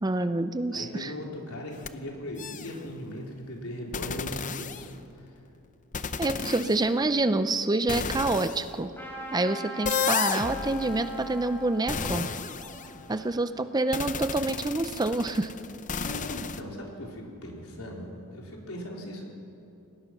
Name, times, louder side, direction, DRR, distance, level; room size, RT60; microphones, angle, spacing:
voice 1, 0.0-1.1 6.2-8.9 9.3-12.3 13.1-15.5, right 2 dB, 20° right, 10 dB, 0.5 m, -27 dB
voice 2, 0.7-5.3 6.0-6.7 13.2-13.3 16.0-19.2, left 1 dB, 75° left, -1 dB, 4.1 m, -39 dB
sound 1, 1.7-1.9 2.4-2.8 3.9-5.2 5.9-6.8 7.9-8.6 9.8-13.2 13.9-16.6, left 6 dB, 35° left, 0.7 m, -33 dB
Trumpet, 8.9-14.0, left 1 dB, 10° left, 3.9 m, -41 dB
28.5 x 18.5 x 6.0 m, 2.8 s
head